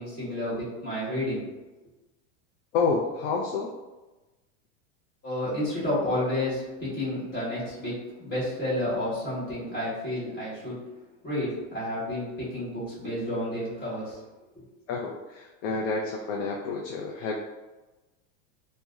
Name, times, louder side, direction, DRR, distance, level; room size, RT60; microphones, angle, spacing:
voice 1, 0.0-1.4 5.2-7.9 8.2-10.8 11.2-14.2 14.5-14.6, left 1 dB, 25° left, -10 dB, 1.4 m, -30 dB
voice 2, 2.7-3.7 14.9-17.4, left 4 dB, 75° left, 0 dB, 0.5 m, -29 dB
3.8 x 2.1 x 2.3 m, 1.1 s
supercardioid pair, 170°, 36 cm